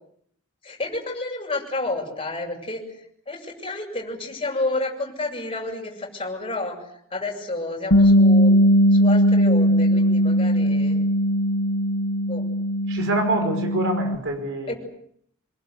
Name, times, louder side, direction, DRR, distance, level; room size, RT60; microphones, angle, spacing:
voice 1, 0.6-2.8 3.3-6.8 7.1-8.5 8.9-11.1 12.3-12.4 14.7-14.8, left 2 dB, 25° left, 0 dB, 7.9 m, -30 dB
Bass guitar, 7.9-14.2, equal, 80° left, 1.9 m, -19 dB
voice 2, 12.9-14.7, right 2 dB, 60° right, 4 dB, 5.5 m, -26 dB
26.0 x 23.0 x 8.2 m, 0.69 s
head